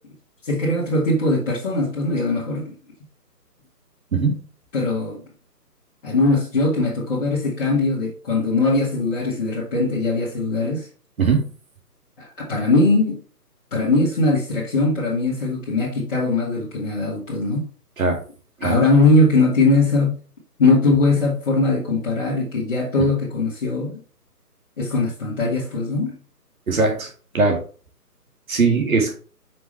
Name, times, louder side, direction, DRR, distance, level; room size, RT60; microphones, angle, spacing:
voice 1, 0.4-2.7 4.7-5.2 6.0-10.9 12.2-13.2 13.7-17.7 18.6-20.2 20.6-24.0 24.8-26.2, left 2 dB, 35° left, 1.7 m, -20 dB
voice 2, 11.2-11.5 18.0-18.2 18.6-18.7 26.7-27.1 27.3-27.6 28.5-29.1, right 4 dB, 60° right, 2.4 m, -19 dB
6.0 x 4.8 x 3.2 m
figure-of-eight pair, 155°, 48 cm